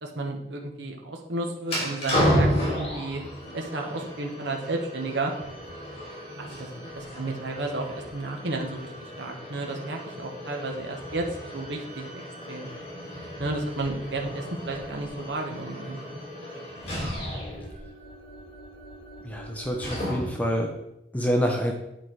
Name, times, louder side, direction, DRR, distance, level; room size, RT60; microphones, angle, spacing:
voice 1, 0.0-3.2 3.5-5.3 6.4-8.9 9.2-11.3 11.5-12.2 12.5-12.7 13.4-16.2, right 2 dB, 75° right, 2 dB, 1.0 m, -32 dB
sound 1, 1.6-20.5, equal, 35° left, 2.9 m, -33 dB
voice 2, 19.2-20.7 21.1-21.7, equal, 10° left, 1 dB, 0.6 m, -26 dB
8.9 x 4.6 x 4.6 m, 0.84 s
head